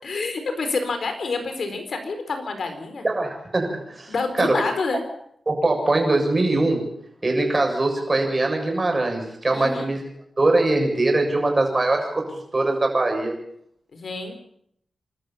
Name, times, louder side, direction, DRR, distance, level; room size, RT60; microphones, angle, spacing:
voice 1, 0.0-3.1 4.1-5.0 9.5-9.9 13.9-14.4, left 3 dB, 65° left, 7 dB, 4.4 m, -28 dB
voice 2, 3.0-4.6 5.5-6.8 7.2-10.0 10.4-13.4, right 2 dB, 30° right, 2 dB, 7.3 m, -22 dB
28.0 x 13.0 x 7.3 m, 0.71 s
cardioid pair, 80°, 0 cm